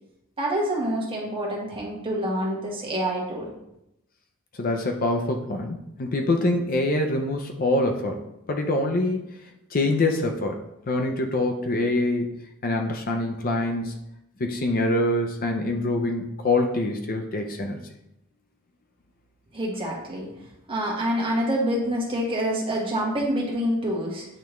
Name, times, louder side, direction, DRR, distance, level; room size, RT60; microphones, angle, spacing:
voice 1, 0.4-3.5 19.5-20.3 20.7-24.2, equal, 25° right, -3 dB, 1.4 m, -27 dB
voice 2, 4.6-9.3 9.7-10.6 10.9-12.4 12.6-13.9 14.4-17.8, left 2 dB, 40° left, 4 dB, 0.5 m, -25 dB
8.8 x 3.4 x 3.1 m, 0.84 s
head